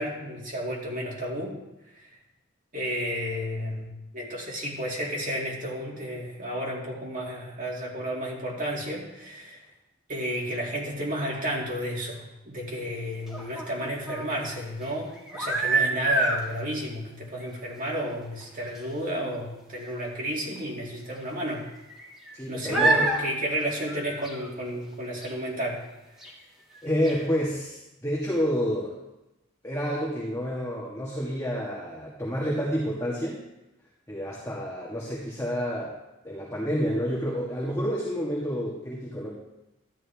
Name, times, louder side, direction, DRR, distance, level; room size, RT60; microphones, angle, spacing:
voice 1, 0.0-1.5 1.9-2.1 2.7-9.6 10.1-21.6 22.5-25.8, equal, 45° right, -3 dB, 2.5 m, -32 dB
sound 1, 13.3-14.3 15.2-16.4 17.4-17.6 17.8-17.9 18.4-18.5 18.8-18.9 20.6-20.7 21.5-22.3 22.7-23.2 23.6-24.5 25.2-25.3 26.2-26.3 26.7-26.8 27.0-27.2, right 2 dB, ahead, 1.8 m, -27 dB
voice 2, 22.3-23.1 26.8-28.9 29.6-33.4 34.1-35.9 36.2-39.3, equal, 15° left, -6 dB, 1.8 m, -29 dB
13.0 x 10.5 x 3.6 m, 0.97 s
head